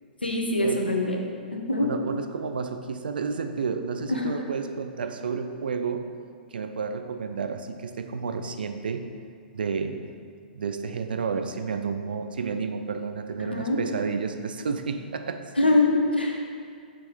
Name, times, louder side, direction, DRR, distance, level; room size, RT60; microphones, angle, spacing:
voice 1, 0.2-1.2 1.5-1.9 4.1-4.3 13.4-13.8 15.6-16.4, left 2 dB, 90° left, 0 dB, 1.1 m, -24 dB
voice 2, 1.8-6.1 6.5-9.1 9.5-10.0 10.5-15.4, right 5 dB, 65° right, 8 dB, 0.5 m, -31 dB
6.6 x 4.5 x 5.2 m, 2.1 s
figure-of-eight pair, 115°, 5 cm